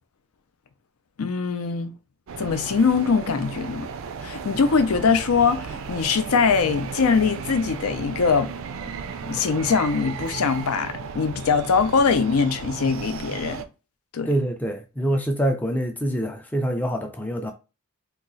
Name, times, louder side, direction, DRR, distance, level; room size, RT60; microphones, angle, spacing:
voice 1, 1.2-1.9 2.4-3.9 4.2-8.5 9.2-13.7 14.1-14.3, left 5 dB, 80° left, 0.5 m, -22 dB
sound 1, 2.3-13.6, right 5 dB, 65° right, 0.4 m, -35 dB
voice 2, 14.3-17.5, right 1 dB, 5° left, 0.4 m, -25 dB
2.9 x 2.4 x 3.9 m
head